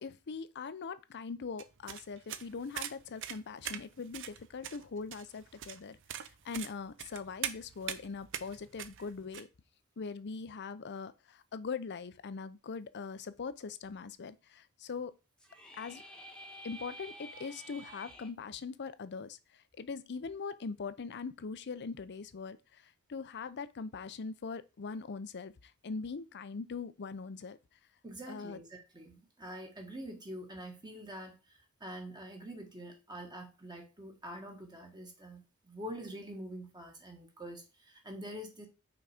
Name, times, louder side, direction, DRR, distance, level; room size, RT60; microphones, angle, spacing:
voice 1, 0.0-9.5 10.0-15.1 15.8-16.0 16.6-19.4 19.8-22.6 23.1-25.5 25.8-27.6 28.3-28.6, left 5 dB, 50° left, 0.6 m, -41 dB
sound 1, 1.6-9.4, right 10 dB, 60° right, 0.6 m, -42 dB
sound 2, 15.4-18.3, equal, 5° left, 1.2 m, -50 dB
voice 2, 28.0-31.4 31.8-38.7, equal, 20° right, 1.5 m, -45 dB
5.9 x 4.1 x 4.9 m
head